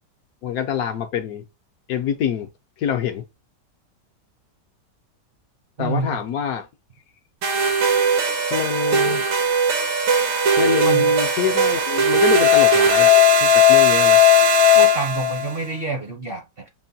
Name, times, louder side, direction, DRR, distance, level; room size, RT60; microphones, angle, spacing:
voice 1, 0.4-1.4 1.9-2.5 2.8-3.2 5.8-6.7 8.5-9.3 10.6-13.1 13.4-14.3, left 9 dB, 70° left, 1.0 m, -25 dB
voice 2, 5.8-6.2 10.8-11.1 14.7-16.7, right 4 dB, 50° right, 0.7 m, -27 dB
sound 1, 7.4-15.5, left 2 dB, 85° right, 1.7 m, -17 dB
6.0 x 2.2 x 2.6 m
omnidirectional pair, 1.8 m